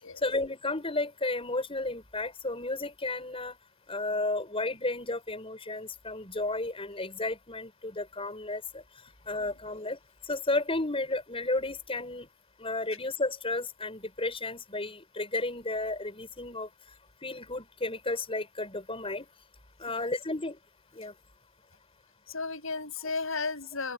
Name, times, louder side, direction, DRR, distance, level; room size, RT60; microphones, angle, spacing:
voice 1, 0.2-3.6 3.9-8.8 9.3-10.0 10.2-12.3 12.6-16.7 17.2-19.3 19.8-20.6 20.9-21.1, left 2 dB, 25° left, 6.5 m, -33 dB
voice 2, 22.3-23.9, left 4 dB, 70° left, 6.7 m, -34 dB
open air
head